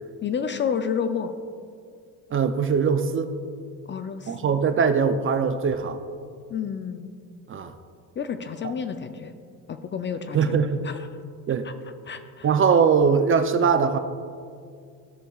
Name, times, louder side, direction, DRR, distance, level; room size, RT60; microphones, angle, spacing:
voice 1, 0.2-1.3 3.9-4.4 6.5-7.1 8.2-9.3 9.7-10.6 10.8-11.1 11.6-11.7 12.0-12.5, left 7 dB, 30° left, 9 dB, 0.4 m, -30 dB
voice 2, 2.3-3.3 4.3-6.0 7.5-7.7 10.3-10.8 11.5-11.7 12.4-14.0, right 6 dB, 35° right, 9 dB, 0.5 m, -21 dB
13.5 x 6.6 x 2.3 m, 2.3 s
cardioid pair, 95°, 38 cm